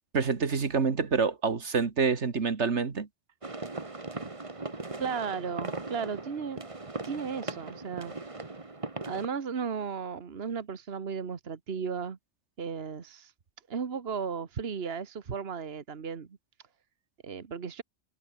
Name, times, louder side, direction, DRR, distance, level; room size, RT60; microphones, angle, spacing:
voice 1, 0.1-3.1, right 5 dB, 80° right, 2.1 m, -27 dB
sound 1, 3.4-9.3, right 3 dB, 30° right, 1.7 m, -39 dB
voice 2, 5.0-6.6 7.0-8.1 9.0-12.2 12.6-13.3 13.7-16.4 17.2-17.8, right 6 dB, 60° right, 1.6 m, -35 dB
omnidirectional pair, 1.2 m